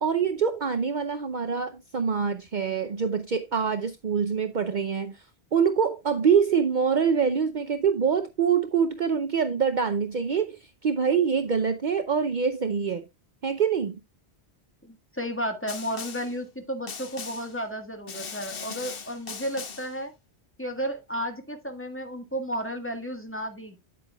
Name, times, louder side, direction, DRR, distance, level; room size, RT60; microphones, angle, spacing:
voice 1, 0.0-5.2 5.5-13.0 13.4-14.0, right 6 dB, 50° right, 0.7 m, -25 dB
voice 2, 14.8-20.1 20.6-23.8, equal, 10° left, 1.5 m, -33 dB
Snare drum, 15.7-16.4 16.9-17.6 18.1-20.0, left 6 dB, 60° left, 1.2 m, -39 dB
9.4 x 8.6 x 2.3 m
omnidirectional pair, 1.1 m